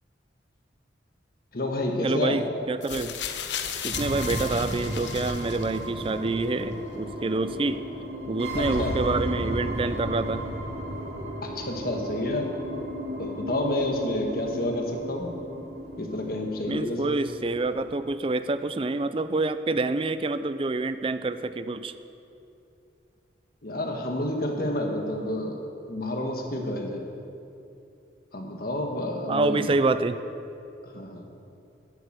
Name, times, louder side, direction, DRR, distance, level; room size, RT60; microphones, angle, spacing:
voice 1, 1.5-2.4 8.6-9.0 11.4-12.5 13.2-15.3 16.0-17.1 23.6-25.6 25.9-27.0 28.3-29.7 30.9-31.2, left 1 dB, 55° left, 2 dB, 1.4 m, -29 dB
voice 2, 2.0-3.1 3.8-7.8 8.3-10.4 16.7-21.9 29.3-30.2, right 3 dB, 30° right, 12 dB, 0.4 m, -27 dB
sound 1, 2.8-6.1 6.9-7.0, left 8 dB, 80° left, 0.8 m, -35 dB
sound 2, 3.9-17.9, equal, 70° right, 2.1 m, -34 dB
11.5 x 8.0 x 7.8 m, 2.7 s
head